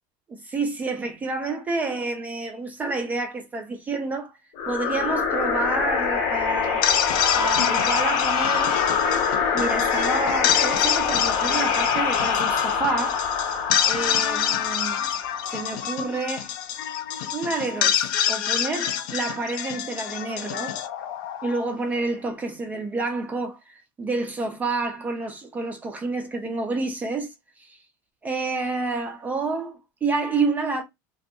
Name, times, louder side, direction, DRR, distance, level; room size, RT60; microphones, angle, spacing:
voice 1, 0.3-4.4 4.7-6.8 7.3-8.8 9.5-13.2 13.8-15.0 15.5-16.5 17.3-20.7 21.4-27.8 28.2-30.8, right 3 dB, 15° right, 0.3 m, -29 dB
sound 1, 4.6-15.9, left 6 dB, 55° left, 0.7 m, -25 dB
sound 2, 6.6-21.9, left 9 dB, 85° left, 0.4 m, -27 dB
2.6 x 2.2 x 2.5 m
cardioid pair, 165°, 11 cm